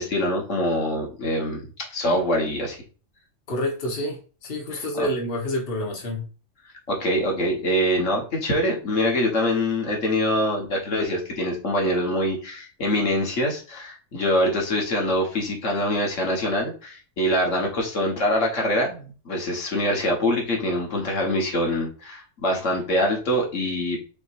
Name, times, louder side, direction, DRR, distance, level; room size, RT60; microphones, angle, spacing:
voice 1, 0.0-2.8 4.7-5.1 6.9-24.0, left 1 dB, 70° left, 1.7 m, -24 dB
voice 2, 3.5-6.2, left 1 dB, 45° left, 1.4 m, -28 dB
6.2 x 3.1 x 2.5 m
omnidirectional pair, 1.4 m